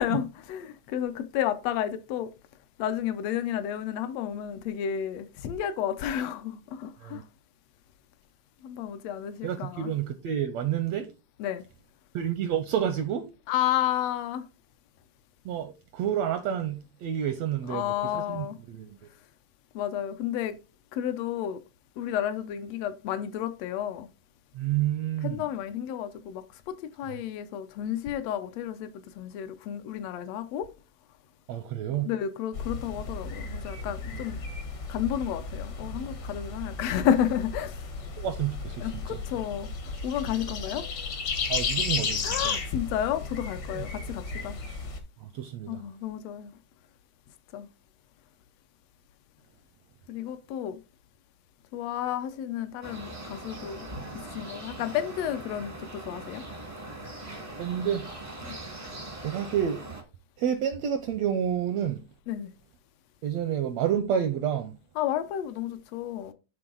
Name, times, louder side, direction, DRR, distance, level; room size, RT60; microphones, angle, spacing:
voice 1, 0.0-2.3 2.8-7.2 8.6-9.9 11.4-11.6 13.5-14.4 17.7-18.6 19.7-20.6 20.9-21.6 22.0-24.1 25.2-30.7 32.0-34.4 34.9-37.8 38.8-40.9 42.2-44.6 45.7-46.5 47.5-47.7 50.1-50.8 51.7-53.9 54.2-56.4 58.4-58.6 62.3-62.5 65.0-66.3, left 10 dB, 80° left, 1.4 m, -31 dB
voice 2, 9.4-11.1 12.1-13.3 15.4-19.0 24.5-25.4 31.5-32.1 34.1-34.2 38.2-39.2 41.5-42.6 43.7-43.9 45.2-45.8 57.2-58.1 58.6-58.9 59.2-59.8 60.4-62.0 63.2-64.8, right 9 dB, 80° right, 1.5 m, -29 dB
sound 1, 32.5-45.0, left 4 dB, 65° left, 1.0 m, -34 dB
sound 2, 52.8-60.0, right 2 dB, 45° right, 0.4 m, -41 dB
10.5 x 3.8 x 3.8 m
omnidirectional pair, 3.6 m